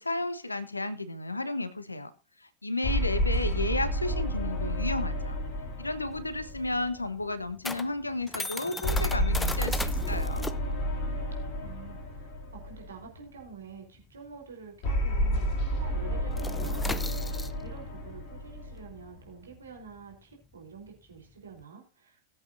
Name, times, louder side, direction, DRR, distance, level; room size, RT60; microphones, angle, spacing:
voice 1, 0.0-2.1 2.4-5.4 5.8-10.5, left 2 dB, 80° left, 13 dB, 1.1 m, -33 dB
sound 1, 2.8-7.4 8.8-13.2 14.8-19.4, equal, 40° left, 3.1 m, -31 dB
voice 2, 3.4-4.0 11.6-12.3 12.6-22.2, right 6 dB, 70° right, 1 dB, 3.8 m, -48 dB
sound 2, 6.1-15.1 15.3-15.6 15.9-21.6, left 3 dB, 10° left, 0.7 m, -39 dB
19.5 x 8.1 x 2.6 m, 0.31 s
figure-of-eight pair, 90°, 0 cm